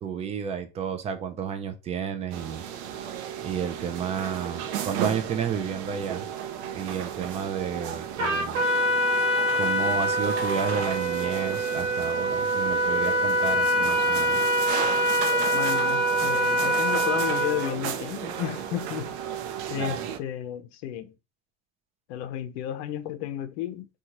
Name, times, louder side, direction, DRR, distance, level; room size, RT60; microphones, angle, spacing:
voice 1, 0.0-2.6 3.4-6.3 6.7-8.6 9.5-14.4 19.8-20.1, right 7 dB, 20° right, 0.3 m, -31 dB
sound 1, 2.3-20.2, right 9 dB, 70° right, 0.6 m, -34 dB
Trumpet, 8.2-17.7, equal, 85° right, 1.1 m, -24 dB
voice 2, 15.5-19.1 19.7-21.1 22.1-23.9, left 11 dB, 65° left, 0.6 m, -32 dB
2.8 x 2.3 x 2.9 m
supercardioid pair, 115°, 35 cm